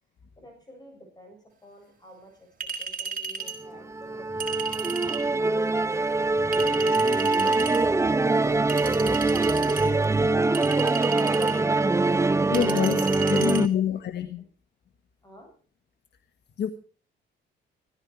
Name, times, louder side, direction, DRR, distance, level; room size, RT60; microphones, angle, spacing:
voice 1, 0.4-2.5 2.8-4.6 12.7-14.0 14.4-14.5 15.2-15.5, equal, 20° left, 7.7 m, -48 dB
Chink clink, 2.6-3.6 4.4-5.3 6.5-7.8 8.7-9.9 10.5-11.6 12.5-13.6, right 6 dB, 45° right, 4.9 m, -34 dB
Musical instrument, 3.6-13.7, right 3 dB, 15° right, 0.6 m, -23 dB
voice 2, 8.7-9.8 12.5-13.0 13.3-14.5 16.6-16.7, left 9 dB, 60° left, 1.6 m, -28 dB
17.0 x 14.5 x 4.8 m
cardioid pair, 90°, 20 cm